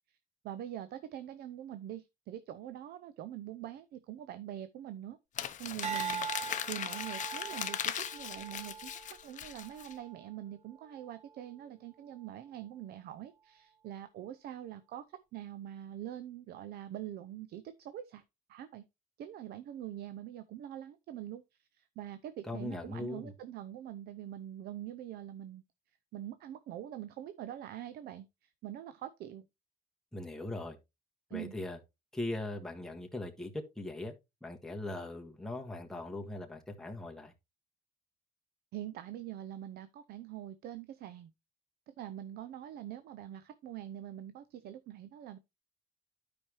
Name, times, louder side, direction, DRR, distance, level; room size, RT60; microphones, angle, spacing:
voice 1, 0.4-8.9 9.2-18.2 18.5-18.8 19.2-25.6 26.1-29.5 31.3-31.5 38.7-41.3 41.9-45.4, right 11 dB, 70° right, 0.6 m, -44 dB
Crumpling crinkling, 5.4-9.9, left 9 dB, 45° left, 0.7 m, -38 dB
sound 1, 5.8-10.3 10.8-11.2, right 7 dB, 40° right, 0.8 m, -42 dB
voice 2, 22.4-23.3 30.1-30.8 31.3-31.8 32.1-34.1 34.4-37.3, left 2 dB, 5° left, 1.6 m, -40 dB
12.0 x 5.2 x 3.1 m
cardioid pair, 110°, 17 cm